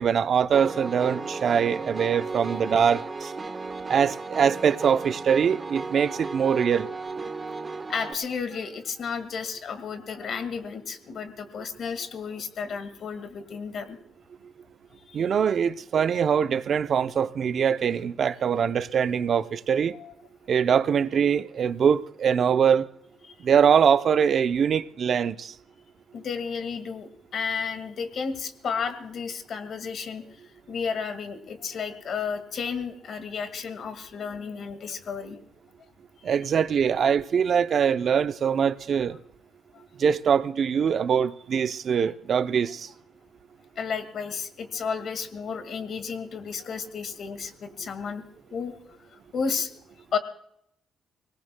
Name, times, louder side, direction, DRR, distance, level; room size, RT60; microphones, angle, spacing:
voice 1, 0.0-3.3 3.9-6.9 15.1-20.0 20.5-22.9 23.4-25.5 36.2-39.2 40.0-42.9, right 7 dB, 55° right, 0.6 m, -23 dB
Piano, 0.5-8.1, right 3 dB, 30° right, 1.2 m, -35 dB
voice 2, 7.9-14.0 15.1-15.2 19.9-20.1 23.2-23.3 26.1-35.4 36.2-36.3 39.7-39.8 43.8-48.2 48.5-49.0 49.3-49.7 50.1-50.2, left 6 dB, 60° left, 1.9 m, -33 dB
25.5 x 18.5 x 2.3 m
cardioid pair, 90°, 0 cm